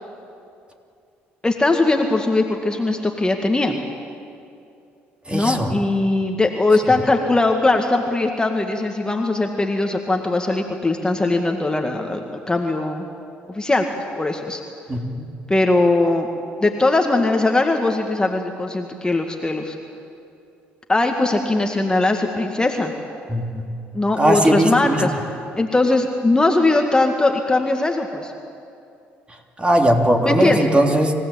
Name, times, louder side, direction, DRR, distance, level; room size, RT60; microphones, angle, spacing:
voice 1, 1.4-3.8 5.3-13.1 13.5-13.9 14.2-14.6 15.5-16.3 16.6-19.8 20.9-22.9 23.9-25.1 25.6-28.3 30.2-30.6, left 2 dB, 15° left, 3 dB, 2.0 m, -20 dB
voice 2, 5.3-5.7 14.9-15.3 23.3-23.7 24.2-25.0 29.6-31.1, right 1 dB, 20° right, 2 dB, 3.4 m, -19 dB
28.0 x 16.0 x 8.6 m, 2.5 s
hypercardioid pair, 65°, 5 cm